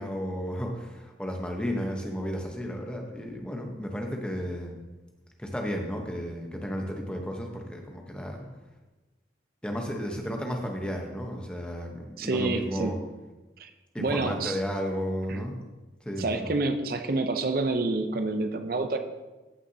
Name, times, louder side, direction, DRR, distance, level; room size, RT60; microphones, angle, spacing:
voice 1, 0.0-4.8 5.4-8.5 9.6-13.0 13.9-15.6 16.0-16.5, equal, 5° left, 1 dB, 0.9 m, -33 dB
voice 2, 12.2-12.9 13.6-13.7 14.0-14.6 15.3-15.4 16.2-19.0, right 3 dB, 50° right, 8 dB, 0.5 m, -28 dB
14.0 x 5.9 x 2.8 m, 1.2 s
head